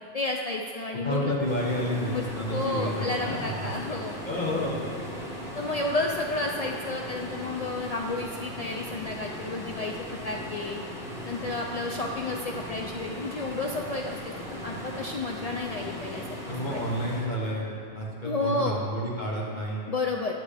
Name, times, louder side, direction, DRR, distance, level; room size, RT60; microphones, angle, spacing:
voice 1, 0.1-1.3 1.9-2.2 2.5-4.2 4.5-4.7 5.5-10.8 11.2-16.4 16.6-16.8 18.2-18.8 19.9-20.3, left 2 dB, 70° left, 0 dB, 0.3 m, -31 dB
voice 2, 1.0-4.0 4.3-4.9 5.5-5.7 16.5-19.8, equal, 40° left, -4 dB, 1.1 m, -30 dB
sound 1, 1.4-17.2, equal, 5° right, 1.2 m, -38 dB
9.9 x 6.8 x 3.3 m, 2.6 s
omnidirectional pair, 1.2 m